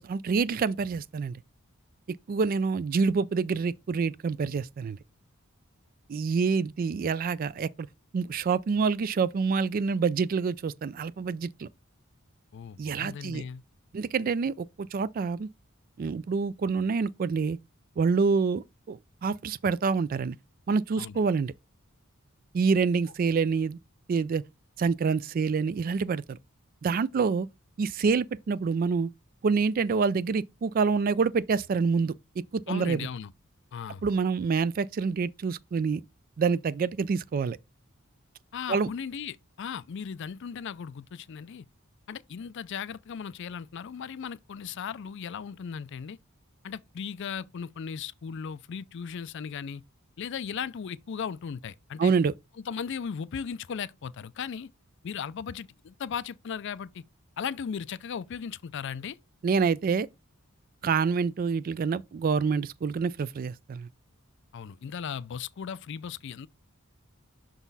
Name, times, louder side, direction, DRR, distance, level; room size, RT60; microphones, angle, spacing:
voice 1, 0.0-1.4 2.3-5.0 6.1-7.7 8.1-11.7 12.8-13.4 13.9-15.5 16.0-17.6 18.0-20.4 20.7-21.5 22.5-23.8 24.1-24.4 24.8-26.4 26.8-27.5 27.8-29.1 29.4-32.1 32.5-33.1 34.0-36.0 36.4-37.6 38.7-38.9 52.0-52.3 59.4-60.1 60.8-63.9, right 5 dB, 40° right, 0.3 m, -27 dB
voice 2, 12.5-13.6 21.0-21.2 32.7-33.3 33.7-34.0 38.5-41.7 42.1-46.2 46.6-49.8 50.2-52.1 52.6-54.7 55.0-57.0 57.4-59.2 64.5-66.5, left 7 dB, 55° left, 0.4 m, -37 dB
6.0 x 3.8 x 4.0 m
head